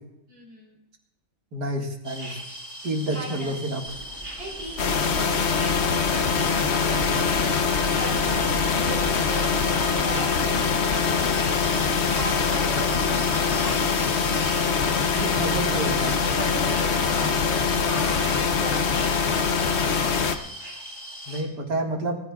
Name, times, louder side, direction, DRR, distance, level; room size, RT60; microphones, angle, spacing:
voice 1, 0.3-0.8 3.1-3.5 4.4-11.5 12.1-15.4 16.3-19.5 19.8-20.5, right 1 dB, 90° right, -3 dB, 5.2 m, -38 dB
voice 2, 1.5-2.4 2.8-3.8 15.1-16.2 21.3-22.2, right 1 dB, 60° right, 1 dB, 2.4 m, -29 dB
sound 1, 2.0-21.4, equal, 15° right, 3.4 m, -39 dB
sound 2, 3.9-10.6, right 2 dB, 35° right, 1.7 m, -41 dB
sound 3, 4.8-20.4, left 5 dB, 50° left, 0.8 m, -23 dB
26.0 x 14.5 x 2.4 m, 0.87 s
omnidirectional pair, 2.1 m